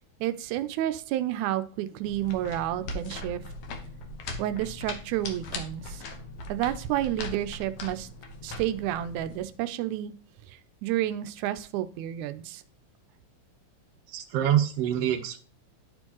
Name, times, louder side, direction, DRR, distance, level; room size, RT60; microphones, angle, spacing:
voice 1, 0.2-3.4 4.4-6.0 6.5-8.1 8.4-10.1 10.5-12.6, right 13 dB, 90° right, 12 dB, 2.0 m, -30 dB
sound 1, 2.0-9.4, left 2 dB, 65° left, 2.0 m, -39 dB
voice 2, 14.1-15.4, right 10 dB, 65° right, 4 dB, 1.8 m, -25 dB
12.0 x 4.4 x 2.9 m, 0.40 s
omnidirectional pair, 3.3 m